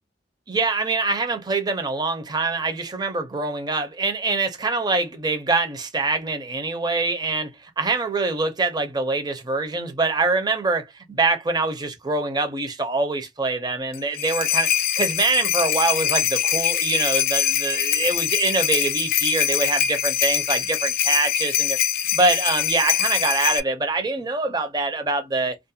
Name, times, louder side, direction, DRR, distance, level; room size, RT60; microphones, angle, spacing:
voice 1, 0.5-21.8 22.1-25.6, right 3 dB, 25° right, 0.5 m, -24 dB
sound 1, 13.9-23.6, left 10 dB, 55° left, 0.3 m, -23 dB
2.4 x 2.1 x 2.7 m
head